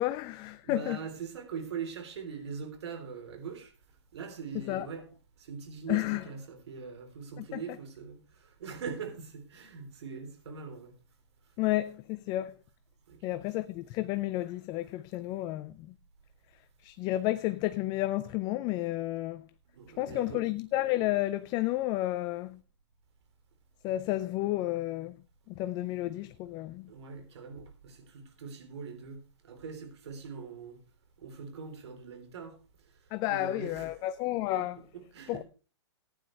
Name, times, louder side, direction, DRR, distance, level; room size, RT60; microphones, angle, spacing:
voice 1, 0.0-1.0 4.7-4.9 5.9-6.2 7.4-7.6 11.6-12.6 13.2-15.9 16.8-19.5 20.0-22.6 23.8-25.2 25.5-26.9 33.1-34.8 35.3-35.4, left 16 dB, 25° left, 0.4 m, -31 dB
voice 2, 0.6-3.7 4.1-5.0 5.4-10.9 13.1-13.5 19.7-20.5 26.9-30.8 31.2-32.5 33.3-33.9 34.6-34.7 34.9-35.4, right 6 dB, 65° right, 3.6 m, -42 dB
15.5 x 9.7 x 3.3 m
hypercardioid pair, 130°, 15 cm